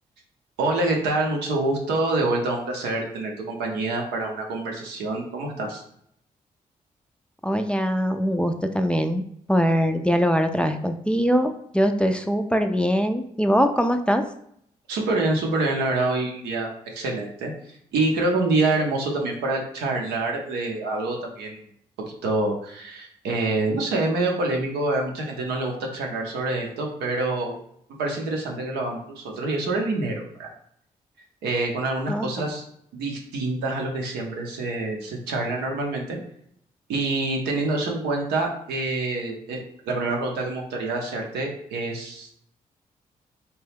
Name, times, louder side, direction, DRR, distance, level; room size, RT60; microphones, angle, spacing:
voice 1, 0.6-5.8 14.9-21.6 22.2-27.5 28.0-30.5 31.4-32.6 32.9-36.2 36.9-39.6 39.9-42.3, right 2 dB, 85° right, 1 dB, 0.6 m, -26 dB
voice 2, 7.4-9.2 9.5-14.2 32.1-32.3, equal, 5° left, 6 dB, 0.3 m, -22 dB
2.9 x 2.2 x 3.3 m, 0.69 s
supercardioid pair, 50°, 17 cm